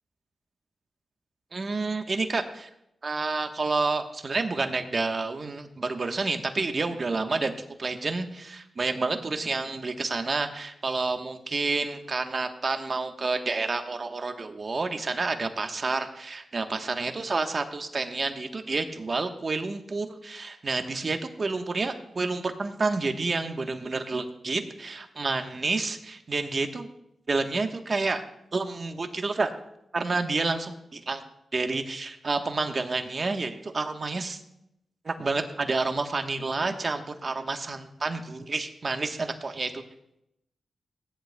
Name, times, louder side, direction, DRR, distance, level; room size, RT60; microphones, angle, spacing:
voice 1, 1.5-2.7 3.0-7.5 7.8-26.9 27.3-28.2 28.5-29.5 29.9-31.2 31.5-34.4 35.0-39.8, right 3 dB, 45° right, 6 dB, 1.1 m, -29 dB
17.5 x 10.5 x 2.3 m, 0.82 s
cardioid pair, 65°, 0 cm